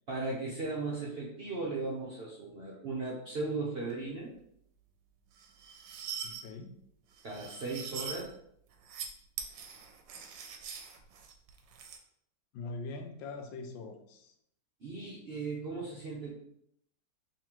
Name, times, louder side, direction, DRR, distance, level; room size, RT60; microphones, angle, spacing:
voice 1, 0.1-4.3 7.2-8.3 14.8-16.3, right 3 dB, 65° right, -4 dB, 0.6 m, -37 dB
sound 1, 5.4-6.4 7.2-8.2 8.7-9.1 9.4-12.0, right 7 dB, 90° right, 1.3 m, -43 dB
voice 2, 6.2-6.8 10.1-10.2 12.5-14.3, left 3 dB, 80° left, 5 dB, 1.2 m, -43 dB
3.7 x 3.2 x 2.9 m, 0.72 s
omnidirectional pair, 1.9 m